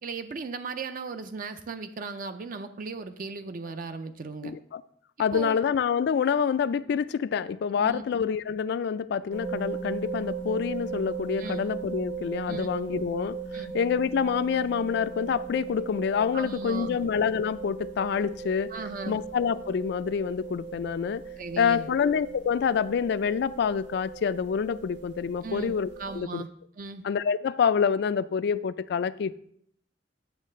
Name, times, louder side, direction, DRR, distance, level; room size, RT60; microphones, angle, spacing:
voice 1, 0.0-4.5 5.3-5.6 7.8-8.0 11.4-11.6 12.5-12.7 13.5-13.7 16.3-17.0 18.7-19.2 21.4-21.9 25.4-26.5 26.8-27.0, right 4 dB, 50° right, 0.5 m, -37 dB
voice 2, 4.4-4.8 5.2-18.7 19.1-21.2 21.6-25.9 26.2-26.4 27.0-29.4, left 6 dB, 65° left, 0.3 m, -27 dB
sound 1, 9.3-26.2, right 5 dB, 75° right, 1.5 m, -38 dB
9.3 x 3.2 x 6.6 m
head